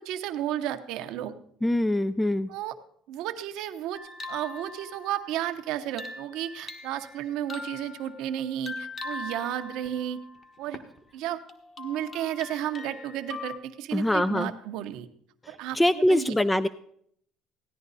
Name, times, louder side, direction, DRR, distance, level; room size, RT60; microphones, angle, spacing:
voice 1, 0.0-1.3 2.5-2.8 3.1-4.0 4.3-10.2 10.6-10.8 11.1-11.4 11.8-15.1 15.5-16.3, right 11 dB, 75° right, 8 dB, 0.9 m, -33 dB
voice 2, 1.6-2.5 13.9-14.5 15.4-16.7, left 1 dB, 10° left, 13 dB, 0.4 m, -24 dB
sound 1, 3.9-11.0 11.5-13.6, left 3 dB, 35° left, 1.5 m, -41 dB
16.5 x 10.5 x 4.1 m, 0.67 s
cardioid pair, 105°, 0 cm